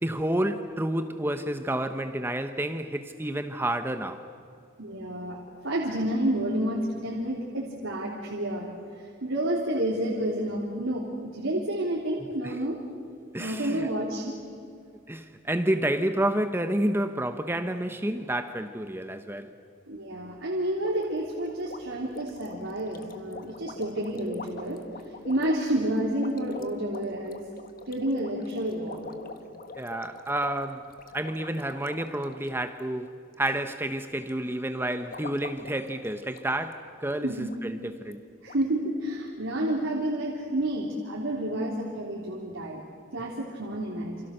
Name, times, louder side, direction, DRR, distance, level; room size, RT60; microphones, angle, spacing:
voice 1, 0.0-4.3 12.4-12.6 13.3-13.9 15.1-19.5 29.7-30.9 31.1-33.1 33.4-38.2, right 1 dB, 10° right, 0.9 m, -29 dB
voice 2, 4.8-5.4 5.6-12.8 13.4-14.4 19.9-24.8 25.3-27.4 27.9-29.1 37.2-37.5 38.4-42.8 43.1-44.2, right 1 dB, 90° right, 3.5 m, -30 dB
sound 1, 20.8-33.6 33.9-34.3 34.8-36.7 37.0-37.1 37.5-37.6 38.1-38.2 38.5-38.6, left 3 dB, 45° left, 1.6 m, -45 dB
29.0 x 27.5 x 6.7 m
head